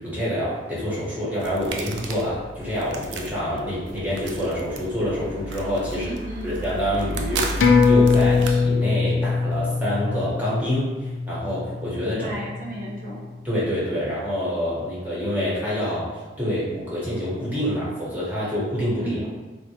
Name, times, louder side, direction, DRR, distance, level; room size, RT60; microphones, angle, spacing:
voice 1, 0.0-6.1 6.4-12.3 13.4-16.1 16.4-19.3, equal, 10° right, -8 dB, 0.9 m, -27 dB
sound 1, 1.4-8.5, right 1 dB, 75° right, 0.4 m, -33 dB
voice 2, 5.9-6.6 12.1-13.3 19.0-19.3, right 1 dB, 45° right, -4 dB, 0.7 m, -34 dB
sound 2, 7.6-12.5 12.9-13.0, left 4 dB, 70° left, 0.4 m, -21 dB
3.4 x 2.1 x 2.7 m, 1.2 s
head